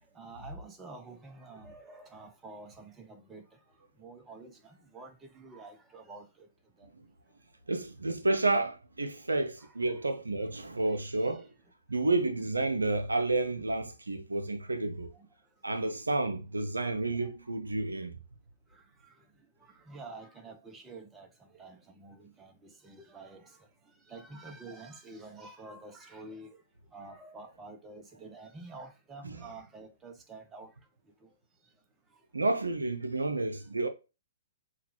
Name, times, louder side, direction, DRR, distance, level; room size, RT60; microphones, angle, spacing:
voice 1, 0.2-3.4 4.0-6.3 6.8-6.9 9.9-10.0 17.2-17.3 19.9-21.3 21.6-23.4 24.1-26.6 26.9-30.7, right 3 dB, 15° right, 0.7 m, -48 dB
voice 2, 7.7-11.5 11.9-15.1 15.6-18.2 29.2-29.4 32.3-33.9, right 2 dB, 85° right, 0.5 m, -30 dB
5.7 x 2.3 x 2.9 m
figure-of-eight pair, 120°, 0 cm